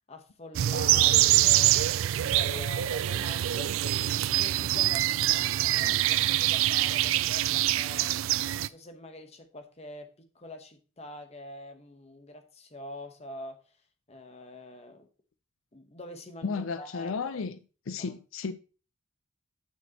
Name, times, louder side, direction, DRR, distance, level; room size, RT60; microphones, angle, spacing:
voice 1, 0.1-4.0 4.4-8.2 8.5-13.6 14.1-15.1 15.7-17.5 18.0-18.1, left 1 dB, 30° left, 1.0 m, -45 dB
sound 1, 0.5-8.7, right 14 dB, 80° right, 0.3 m, -25 dB
voice 2, 16.4-17.6 17.9-18.5, left 5 dB, 90° left, 0.5 m, -33 dB
9.6 x 6.1 x 2.9 m
head